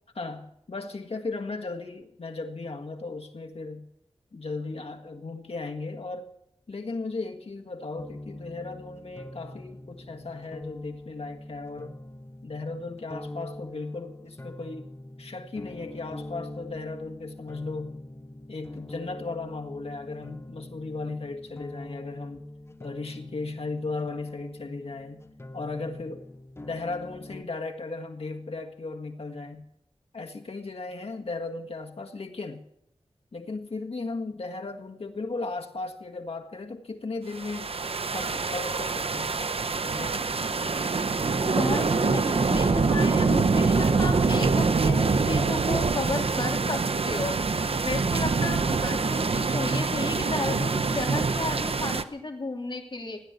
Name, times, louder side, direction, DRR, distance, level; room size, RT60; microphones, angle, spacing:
voice 1, 0.2-3.9 4.3-6.3 6.7-12.0 12.4-14.9 15.2-18.1 18.5-22.4 22.8-25.2 25.5-26.3 26.6-29.7 30.1-32.6 33.3-37.7 38.1-39.4 39.8-40.2, left 3 dB, 70° left, 1.8 m, -36 dB
sound 1, 8.0-27.4, left 1 dB, 25° left, 1.1 m, -43 dB
sound 2, 37.3-52.0, right 4 dB, 65° right, 0.8 m, -25 dB
voice 2, 41.4-47.4 47.8-53.2, left 2 dB, 50° left, 3.0 m, -33 dB
16.0 x 10.5 x 8.2 m
wide cardioid pair, 65°, 10 cm